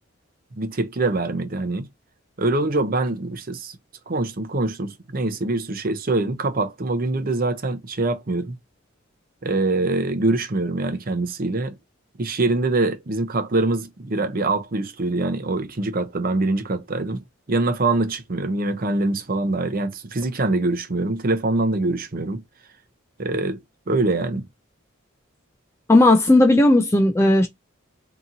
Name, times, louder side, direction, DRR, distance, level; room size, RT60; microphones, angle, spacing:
voice 1, 0.6-1.9 2.4-3.7 4.1-8.6 9.4-11.8 12.2-17.2 17.5-22.4 23.2-23.6 23.9-24.5, right 2 dB, 45° right, 0.7 m, -24 dB
voice 2, 25.9-27.5, left 1 dB, 15° left, 0.4 m, -15 dB
2.8 x 2.6 x 3.8 m
head